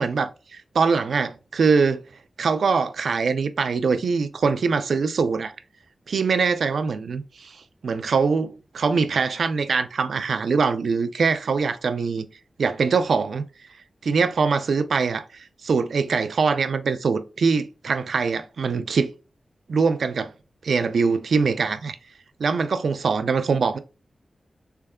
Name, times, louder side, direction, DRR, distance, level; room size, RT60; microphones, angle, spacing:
voice 1, 0.0-2.0 2.4-5.5 6.1-12.3 12.6-13.4 14.0-19.1 19.7-20.3 20.6-22.0 22.4-23.8, right 5 dB, 85° right, 0.3 m, -23 dB
3.5 x 3.3 x 2.2 m
wide cardioid pair, 140°, 0 cm